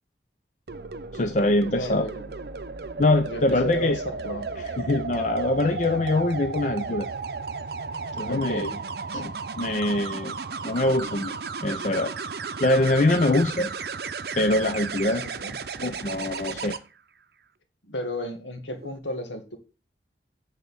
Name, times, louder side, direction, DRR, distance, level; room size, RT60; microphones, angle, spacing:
sound 1, 0.7-16.8 18.7-19.0, right 4 dB, 60° right, 0.6 m, -34 dB
voice 1, 1.1-2.1 3.0-4.0 4.6-7.1 8.1-8.7 9.1-10.3 10.6-11.3 11.6-12.1 12.6-13.7 14.3-15.3 15.8-16.8, left 2 dB, 40° left, 7 dB, 0.5 m, -24 dB
voice 2, 1.8-2.2 3.2-4.5 8.3-8.8 15.4-15.6 17.8-19.6, equal, 90° left, 5 dB, 1.9 m, -33 dB
8.2 x 4.0 x 7.0 m, 0.32 s
head